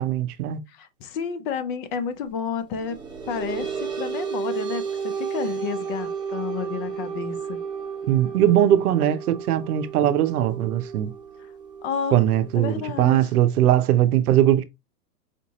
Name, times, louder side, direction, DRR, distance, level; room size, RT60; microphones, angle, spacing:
voice 1, 0.0-0.6 8.1-11.1 12.1-14.6, right 12 dB, 65° right, 0.8 m, -20 dB
voice 2, 0.7-3.0 3.3-7.6 11.8-12.2 12.5-13.2, left 6 dB, 30° left, 0.7 m, -31 dB
sound 1, 2.8-13.8, right 6 dB, 10° right, 0.7 m, -33 dB
5.1 x 2.6 x 2.9 m
hypercardioid pair, 130°, 49 cm